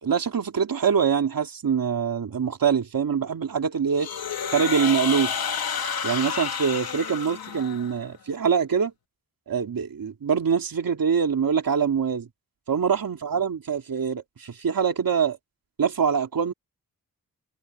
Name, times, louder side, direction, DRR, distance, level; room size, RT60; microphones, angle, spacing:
voice 1, 0.0-4.1 4.5-5.3 6.0-8.9 9.5-12.3 12.7-15.4 15.8-16.5, right 7 dB, 70° right, 2.9 m, -24 dB
sound 1, 4.0-8.0, left 7 dB, 85° left, 3.0 m, -30 dB
cardioid pair, 75°, 35 cm